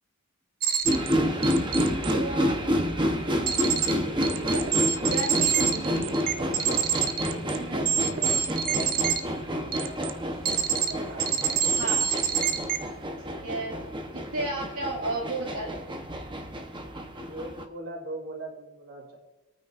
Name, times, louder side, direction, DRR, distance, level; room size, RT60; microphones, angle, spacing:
sound 1, 0.6-1.1 1.4-2.1 3.5-3.9 4.2-9.2 9.7-10.1 10.4-10.9 11.2-12.8, right 8 dB, 40° right, 0.7 m, -26 dB
sound 2, 0.9-17.6, equal, 20° right, 1.0 m, -29 dB
voice 1, 2.0-2.6 3.4-4.7 5.0-6.5 7.1-8.0 8.2-8.3 8.7-8.9 11.7-12.1 13.4-13.8 14.1-15.8, right 2 dB, 85° right, -5 dB, 2.3 m, -35 dB
voice 2, 5.5-5.9 7.5-9.0 9.6-11.6 17.1-19.2, right 2 dB, 55° right, -3 dB, 3.2 m, -42 dB
26.0 x 9.1 x 2.6 m, 1.0 s
head